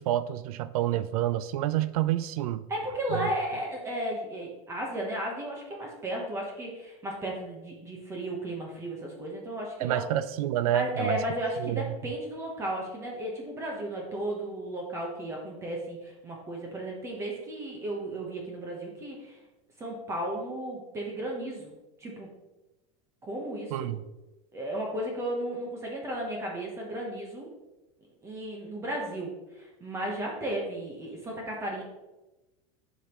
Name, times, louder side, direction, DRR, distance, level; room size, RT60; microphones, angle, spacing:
voice 1, 0.0-2.6 3.1-3.3 9.8-11.2 11.6-11.9 23.7-24.0, right 12 dB, 85° right, 14 dB, 0.5 m, -28 dB
voice 2, 2.7-10.0 10.7-19.4 19.8-21.7 22.0-22.3 23.2-23.9 24.5-27.5 28.2-31.8, right 1 dB, 15° right, -1 dB, 1.0 m, -34 dB
9.8 x 5.2 x 3.0 m, 1.0 s
supercardioid pair, 175°, 18 cm